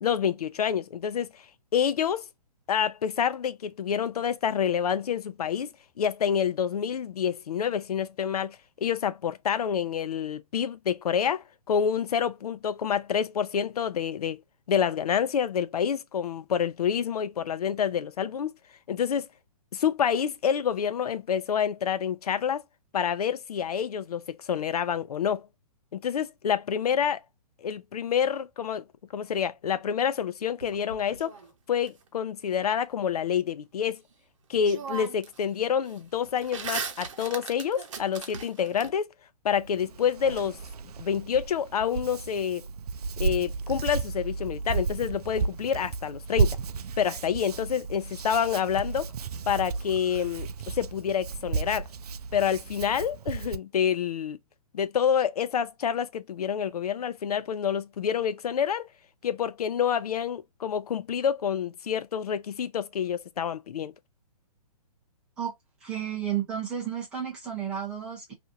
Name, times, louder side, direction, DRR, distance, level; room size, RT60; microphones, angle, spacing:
voice 1, 0.0-1.3 1.7-2.2 2.7-5.7 6.0-14.4 14.7-18.5 18.9-19.3 19.7-22.6 22.9-25.5 25.9-27.2 27.6-28.8 29.1-31.3 31.7-34.0 34.5-39.1 39.4-40.6 41.0-42.6 43.2-46.6 47.0-49.1 49.5-50.5 50.8-51.9 52.3-54.4 54.7-58.9 59.2-63.9, left 8 dB, 75° left, 0.5 m, -28 dB
sound 1, 30.6-31.9 34.1-34.2 34.6-35.4 35.7-38.9, right 6 dB, 50° right, 0.8 m, -38 dB
Hands, 39.5-53.6, right 5 dB, 80° right, 0.4 m, -33 dB
voice 2, 65.8-68.3, right 9 dB, 5° right, 0.5 m, -32 dB
2.9 x 2.5 x 2.5 m
hypercardioid pair, 170°, 20 cm